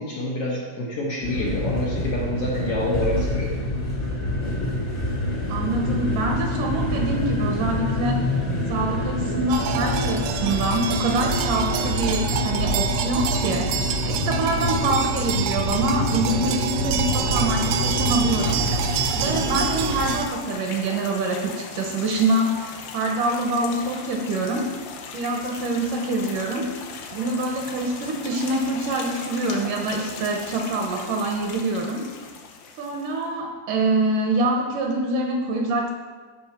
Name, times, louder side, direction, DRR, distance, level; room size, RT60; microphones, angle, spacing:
voice 1, 0.0-3.6, left 1 dB, 70° left, -3 dB, 1.4 m, -27 dB
sound 1, 1.2-20.1, left 1 dB, 55° left, 0.9 m, -26 dB
voice 2, 5.5-8.2 8.7-18.7 19.1-24.7 25.1-26.7 27.1-32.1 32.8-35.9, right 2 dB, 70° right, 1 dB, 2.2 m, -25 dB
sound 2, 9.5-20.3, right 8 dB, 85° right, 2.5 m, -28 dB
sound 3, 18.4-33.2, left 5 dB, 90° left, 2.9 m, -38 dB
13.5 x 5.6 x 4.3 m, 1.5 s
omnidirectional pair, 4.3 m